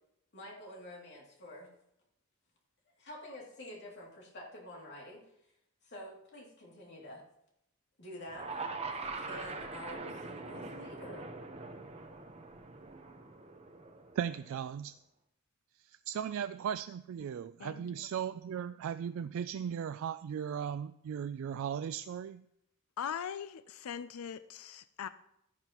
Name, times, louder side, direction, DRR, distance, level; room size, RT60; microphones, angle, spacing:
voice 1, 0.3-1.7 3.0-5.2 5.8-7.2 8.0-8.7 9.0-11.3, left 1 dB, 55° left, 2.6 m, -48 dB
sound 1, 8.3-14.6, right 3 dB, 30° right, 0.9 m, -43 dB
voice 2, 14.2-15.0 15.8-22.4, right 8 dB, 70° right, 0.3 m, -37 dB
voice 3, 17.6-18.1 23.0-25.1, left 8 dB, 85° left, 0.4 m, -41 dB
12.5 x 11.0 x 3.0 m
head